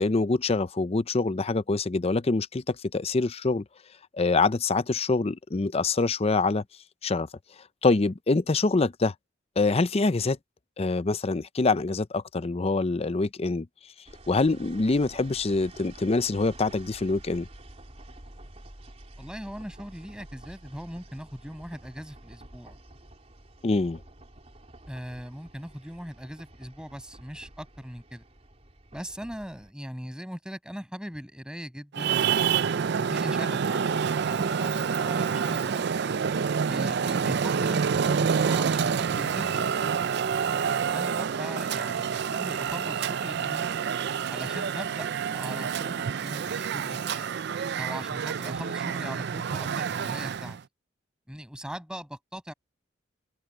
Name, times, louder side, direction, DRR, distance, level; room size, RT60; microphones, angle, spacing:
voice 1, 0.0-3.6 4.2-6.6 7.0-7.3 7.8-9.1 9.6-10.4 10.8-13.7 14.3-17.5 23.6-24.0, left 3 dB, 30° left, 0.5 m, -25 dB
sound 1, 14.1-29.7, right 1 dB, 35° right, 3.5 m, -49 dB
voice 2, 19.2-22.8 24.9-28.2 28.9-35.8 36.7-39.8 40.8-43.7 44.3-47.3 47.8-50.6 51.3-52.5, equal, 5° right, 7.2 m, -40 dB
Traffic noise roadway noise, 31.9-50.6, right 6 dB, 60° right, 0.4 m, -28 dB
open air
head